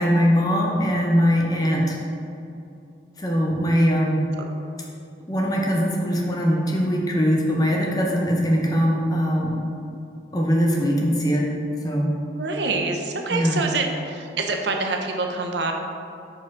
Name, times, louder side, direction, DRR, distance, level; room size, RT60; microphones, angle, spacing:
voice 1, 0.0-2.0 3.2-4.2 5.3-9.6 10.3-11.5 11.8-12.1 13.3-13.6, equal, 20° left, -1 dB, 0.7 m, -21 dB
voice 2, 12.3-15.7, right 3 dB, 75° right, 3 dB, 0.7 m, -26 dB
4.8 x 4.3 x 5.9 m, 2.6 s
head